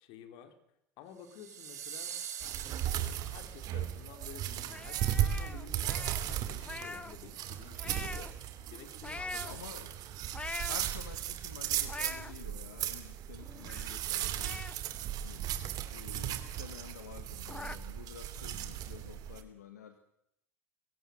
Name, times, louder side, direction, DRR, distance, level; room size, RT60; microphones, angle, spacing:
voice 1, 0.1-0.6 1.0-2.2 2.8-8.3 8.7-9.9, left 9 dB, 55° left, 7 dB, 3.8 m, -51 dB
sound 1, 1.2-3.7, right 8 dB, 85° right, 3.3 m, -44 dB
sound 2, 2.4-19.4, right 11 dB, 50° right, 2.6 m, -36 dB
sound 3, 4.7-7.2 7.5-8.4 9.0-9.5 10.1-11.1 11.6-12.3 12.8-12.9 13.2-14.1 14.4-15.9 16.3-16.4 16.7-16.8 17.1-17.8, left 3 dB, 15° left, 1.0 m, -43 dB
voice 2, 9.4-9.9 10.6-14.8 15.2-20.0, left 8 dB, 80° left, 9 dB, 1.5 m, -50 dB
24.5 x 16.5 x 8.1 m, 0.81 s
hypercardioid pair, 85°, 9 cm